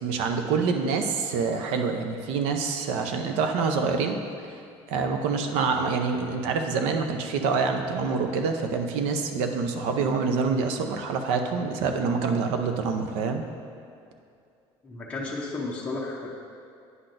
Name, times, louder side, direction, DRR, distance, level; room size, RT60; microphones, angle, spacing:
voice 1, 0.0-4.2 4.9-13.4, right 5 dB, 75° right, 5 dB, 0.6 m, -26 dB
voice 2, 14.8-16.3, left 3 dB, 10° left, -4 dB, 0.6 m, -33 dB
9.4 x 5.8 x 2.6 m, 2.4 s
cardioid pair, 175°, 11 cm